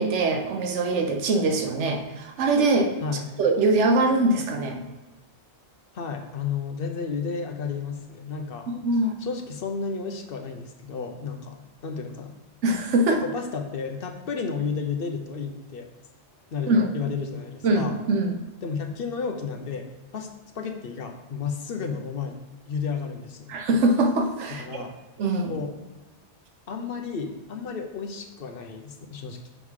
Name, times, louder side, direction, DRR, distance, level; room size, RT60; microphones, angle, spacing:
voice 1, 0.0-3.0 3.4-4.8 8.7-9.1 12.6-13.2 16.7-16.9 17.6-18.4 23.5-24.9 25.2-25.6, right 2 dB, 90° right, 4 dB, 1.1 m, -23 dB
voice 2, 5.9-8.7 9.2-12.3 13.1-15.9 16.5-18.0 18.6-22.4 22.7-23.6 24.5-24.9 25.5-25.8 26.7-29.5, left 5 dB, 60° left, 4 dB, 0.8 m, -32 dB
6.4 x 3.6 x 4.7 m, 1.2 s
omnidirectional pair, 1.2 m